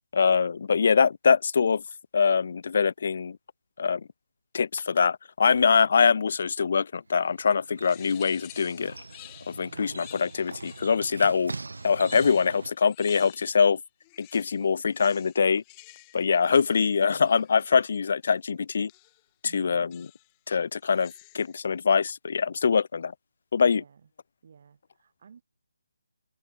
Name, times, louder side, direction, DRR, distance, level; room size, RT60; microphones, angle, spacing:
voice 1, 0.1-1.8 2.1-3.4 3.8-4.0 4.5-9.0 9.5-11.5 11.8-13.8 14.2-15.6 16.1-18.9 19.5-20.0 20.5-23.1 23.5-23.8, left 6 dB, 45° left, 0.4 m, -23 dB
sound 1, 7.1-12.7, right 3 dB, 75° right, 3.2 m, -42 dB
sound 2, 7.8-11.2 11.7-13.7 14.0-17.9 18.9-19.3 19.9-20.4 20.8-21.6, left 27 dB, 15° left, 1.5 m, -51 dB
voice 2, 9.6-10.3 19.4-20.0 23.6-24.1 24.4-25.4, right 6 dB, 40° right, 5.9 m, -52 dB
open air
figure-of-eight pair, 165°, 0 cm